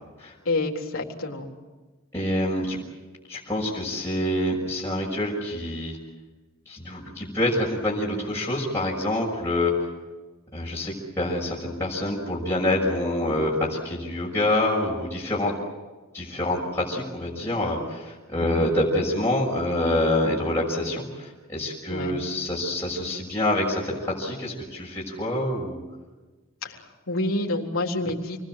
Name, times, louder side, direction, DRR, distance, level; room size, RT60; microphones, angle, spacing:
voice 1, 0.5-1.5 18.4-18.7 21.9-22.1 26.6-28.4, left 2 dB, 70° left, 1 dB, 3.8 m, -28 dB
voice 2, 2.1-2.8 3.3-6.0 6.7-9.9 10.5-15.5 16.1-25.8, left 1 dB, 10° left, -6 dB, 6.3 m, -26 dB
29.0 x 21.0 x 7.6 m, 1.3 s
head